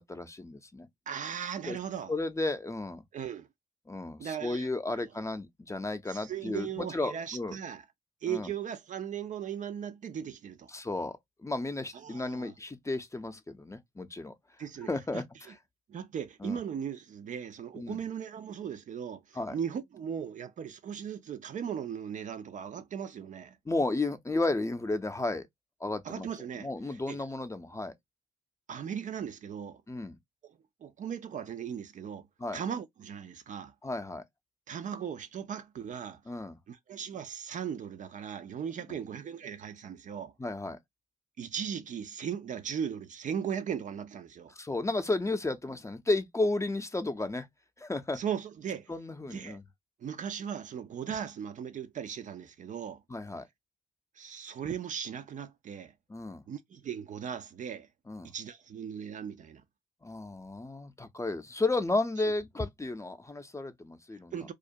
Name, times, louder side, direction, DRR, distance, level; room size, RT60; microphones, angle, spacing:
voice 1, 0.0-0.9 1.7-1.8 2.1-3.0 3.9-7.6 8.3-8.5 10.7-11.1 11.4-14.3 14.8-15.5 16.4-16.6 17.7-18.0 19.4-19.5 23.7-25.5 25.8-26.3 26.6-27.9 29.9-30.2 32.4-32.6 33.8-34.2 36.3-36.6 40.4-40.8 44.5-47.5 47.8-48.2 48.9-49.6 53.1-53.5 56.1-56.4 58.1-58.3 60.0-64.3, left 2 dB, 15° left, 0.5 m, -33 dB
voice 2, 1.1-2.1 3.1-3.5 4.2-4.7 5.0-5.1 6.1-7.8 8.2-10.7 11.9-12.5 14.6-14.9 15.1-15.2 15.9-23.6 26.0-27.2 28.7-29.8 30.4-32.3 32.5-33.7 34.7-36.2 36.7-40.3 41.4-44.5 48.1-48.9 49.3-49.6 50.0-53.0 54.2-55.9 56.5-57.9 58.2-59.6 64.3-64.5, right 8 dB, 50° right, 0.4 m, -38 dB
2.3 x 2.1 x 2.6 m
hypercardioid pair, 45°, 17 cm